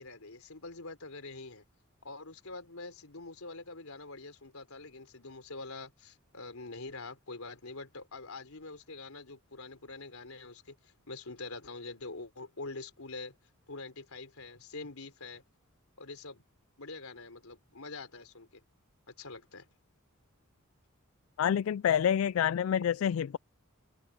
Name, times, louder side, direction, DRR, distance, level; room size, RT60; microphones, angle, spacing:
voice 1, 0.0-1.6 2.0-13.3 13.7-15.4 16.0-16.5 16.8-18.6 19.1-19.7, left 3 dB, 90° left, 3.8 m, -45 dB
voice 2, 21.4-23.4, left 9 dB, 70° left, 0.3 m, -27 dB
head